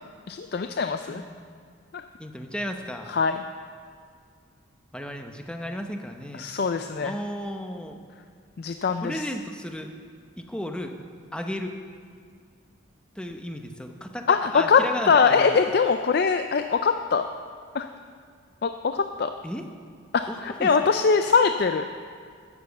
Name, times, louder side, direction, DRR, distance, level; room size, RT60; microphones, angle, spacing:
voice 1, 0.3-1.2 1.9-2.0 3.1-3.4 6.4-7.1 8.6-9.2 14.3-17.2 17.7-17.9 18.6-19.3 20.1-21.9, left 5 dB, 50° left, 8 dB, 0.4 m, -22 dB
voice 2, 2.2-3.1 4.9-6.4 7.0-8.0 9.0-9.9 10.4-10.9 11.3-11.7 13.1-15.6 19.4-19.7 20.3-20.7, equal, 5° left, 4 dB, 0.7 m, -34 dB
12.0 x 7.1 x 7.8 m, 2.1 s
head